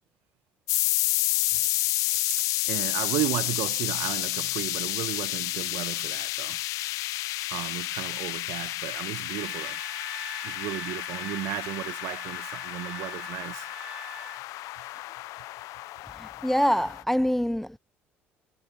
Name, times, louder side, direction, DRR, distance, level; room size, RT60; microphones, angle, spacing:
sound 1, 0.7-17.0, left 18 dB, 65° left, 0.9 m, -30 dB
voice 1, 2.3-6.6 7.5-9.8 10.4-13.7 14.8-14.9, right 18 dB, 65° right, 1.6 m, -34 dB
Trumpet, 9.4-14.4, right 2 dB, 15° right, 5.4 m, -44 dB
voice 2, 16.2-17.8, equal, 5° left, 0.5 m, -25 dB
hypercardioid pair, 55°, 6 cm